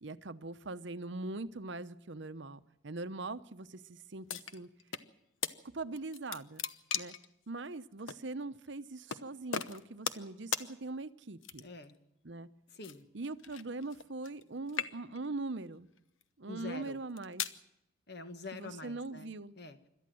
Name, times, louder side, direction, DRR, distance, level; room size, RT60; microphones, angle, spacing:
voice 1, 0.0-4.7 5.7-6.6 6.9-7.1 7.5-11.6 12.2-12.5 13.1-15.9 16.4-17.4 18.5-19.5, right 2 dB, 60° right, 12 dB, 0.8 m, -41 dB
sound 1, 4.3-5.1 5.4-5.6 6.0-7.3 8.1-8.2 9.1-9.2 9.5-10.3 10.5-10.7 11.4-11.9 12.8-14.4 14.7-15.3 16.0-16.2 16.9-17.6, left 8 dB, 75° left, 1.0 m, -38 dB
voice 2, 11.6-12.0 12.7-13.0 16.5-17.0 18.1-19.9, left 3 dB, 55° left, 9 dB, 1.5 m, -46 dB
26.5 x 13.0 x 7.7 m, 0.87 s
head